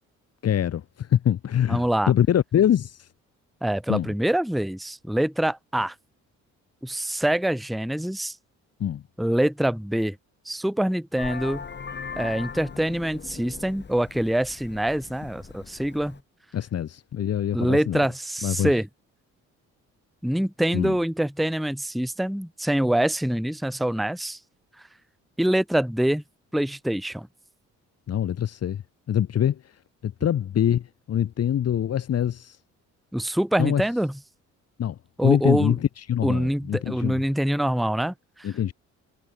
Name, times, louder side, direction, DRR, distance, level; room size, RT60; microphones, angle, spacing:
voice 1, 0.4-3.1 3.9-4.1 8.8-9.0 16.5-18.0 18.4-18.7 20.7-20.9 28.1-28.8 29.1-29.6 30.0-32.6 33.6-33.8 34.8-37.2 38.4-38.7, left 10 dB, 55° left, 1.4 m, -24 dB
voice 2, 1.7-2.1 3.6-5.9 6.8-8.4 9.2-10.2 10.5-11.7 12.2-16.2 17.5-18.9 20.2-24.4 25.4-26.2 26.5-27.3 33.1-34.2 35.2-35.8 36.2-38.5, right 1 dB, ahead, 0.8 m, -25 dB
Vehicle horn car horn honking, 11.2-16.2, left 6 dB, 35° left, 2.4 m, -39 dB
cardioid pair, 90°, 30 cm